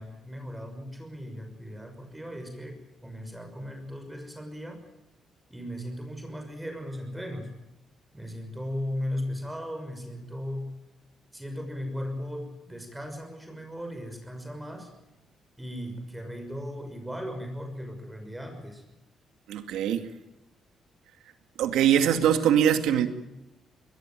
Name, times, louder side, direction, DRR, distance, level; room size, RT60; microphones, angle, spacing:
voice 1, 0.0-4.8 5.5-7.6 8.1-10.8 11.3-14.9 15.6-18.8, equal, 10° right, 5 dB, 6.1 m, -37 dB
voice 2, 19.5-20.1 21.6-23.1, right 9 dB, 90° right, 8 dB, 2.3 m, -22 dB
22.0 x 20.0 x 9.2 m, 0.91 s
cardioid pair, 90°, 0 cm